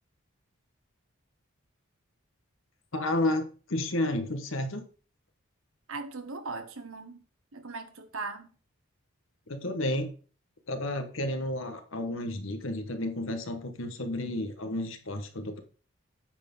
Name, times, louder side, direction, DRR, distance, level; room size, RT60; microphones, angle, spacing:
voice 1, 2.9-4.8 9.5-10.1 10.7-15.6, left 1 dB, 70° left, 1.2 m, -31 dB
voice 2, 5.9-7.2 7.5-8.5, right 3 dB, 80° right, 1.1 m, -39 dB
8.9 x 4.3 x 5.3 m
head